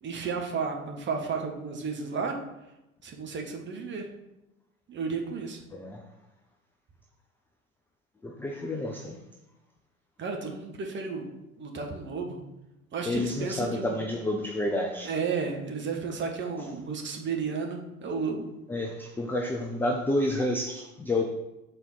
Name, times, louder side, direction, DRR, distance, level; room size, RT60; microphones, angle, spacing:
voice 1, 0.0-2.4 3.0-4.1 4.9-5.6 10.2-11.3 11.6-12.4 12.9-14.1 15.0-18.4, right 5 dB, 25° right, 2 dB, 1.4 m, -33 dB
voice 2, 5.7-6.0 8.2-9.2 13.1-15.1 16.6-16.7 18.7-21.2, left 1 dB, 5° left, 2 dB, 0.4 m, -29 dB
6.8 x 4.1 x 5.5 m, 0.95 s
figure-of-eight pair, 75°, 44 cm